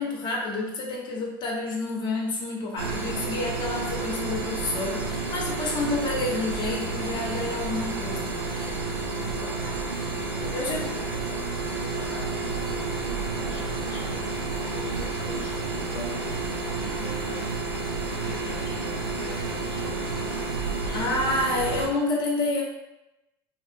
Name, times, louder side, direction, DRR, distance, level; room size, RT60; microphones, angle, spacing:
voice 1, 0.0-8.8 10.5-10.9 20.9-22.6, left 2 dB, 40° left, -2 dB, 0.9 m, -29 dB
sound 1, 2.8-21.9, right 3 dB, 90° right, 0.5 m, -30 dB
sound 2, 7.0-17.3, right 4 dB, 35° right, 0.4 m, -47 dB
voice 2, 10.3-21.0, left 2 dB, 70° left, -3 dB, 0.7 m, -43 dB
2.6 x 2.0 x 3.5 m, 0.92 s
hypercardioid pair, 80°, 12 cm